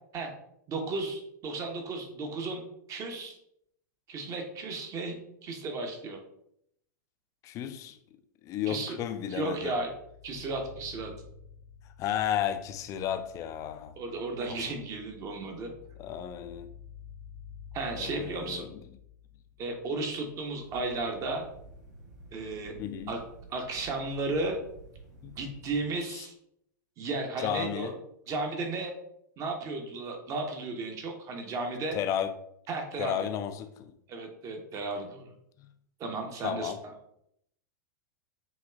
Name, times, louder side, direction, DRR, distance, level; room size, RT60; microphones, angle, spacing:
voice 1, 0.7-3.4 4.1-5.2 5.4-6.2 8.7-9.0 9.3-9.9 10.2-11.1 14.0-15.7 17.7-18.6 19.6-21.4 22.3-22.7 23.1-23.2 23.5-24.6 25.3-26.3 27.0-27.9 28.3-28.9 29.4-32.0 32.7-33.3 34.1-35.3 36.0-36.9, right 3 dB, 30° right, 4 dB, 1.0 m, -34 dB
voice 2, 7.4-8.0 8.4-9.7 12.0-13.9 14.5-14.7 16.0-16.7 18.0-18.8 22.8-23.2 25.2-25.3 26.1-26.2 27.4-27.9 31.9-32.3 33.0-33.9 36.4-36.8, left 10 dB, 30° left, 9 dB, 0.4 m, -33 dB
sound 1, 9.4-22.3, left 7 dB, 90° left, 0.8 m, -51 dB
sound 2, 20.6-25.9, right 3 dB, 60° right, 1.4 m, -51 dB
7.3 x 3.0 x 2.4 m, 0.74 s
figure-of-eight pair, 95°, 11 cm